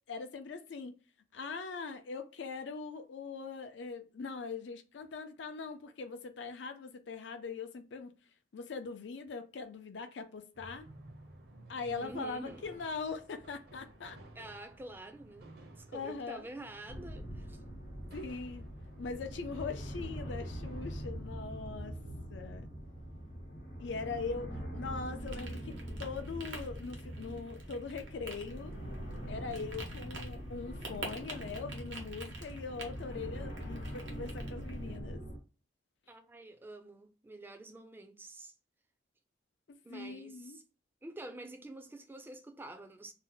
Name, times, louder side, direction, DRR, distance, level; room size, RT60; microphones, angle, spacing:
voice 1, 0.1-1.0 1.3-8.1 8.5-10.9 11.7-14.2 15.9-16.4 18.1-18.7 19.0-21.9 22.3-22.7 23.8-28.7 29.3-35.2 39.7-40.6, left 4 dB, 80° left, 0.5 m, -41 dB
sound 1, 10.6-21.1, right 1 dB, 55° right, 0.6 m, -55 dB
voice 2, 11.9-12.7 14.3-17.6 36.1-38.5 39.8-40.6 41.0-43.1, right 2 dB, 10° right, 0.3 m, -48 dB
sound 2, 16.9-35.4, equal, 60° left, 0.9 m, -43 dB
sound 3, 25.2-35.0, right 3 dB, 90° right, 0.9 m, -49 dB
2.7 x 2.1 x 3.8 m
head